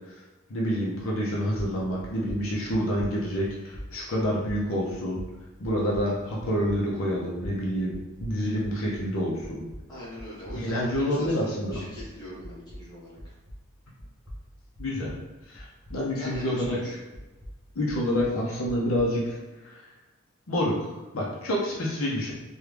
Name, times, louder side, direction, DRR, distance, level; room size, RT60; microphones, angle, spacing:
voice 1, 0.5-5.2 5.6-9.7 10.5-11.8 14.8-15.1 15.5-16.8 17.7-19.4 19.6-19.8 20.5-22.3, equal, 70° left, -4 dB, 0.7 m, -28 dB
sound 1, 2.0-9.1 9.4-13.7 14.0-16.8 17.1-19.2, equal, 20° right, 0.9 m, -44 dB
voice 2, 9.9-13.3 16.1-17.0, equal, 20° left, -8 dB, 1.2 m, -41 dB
3.5 x 2.3 x 3.3 m, 1.1 s
head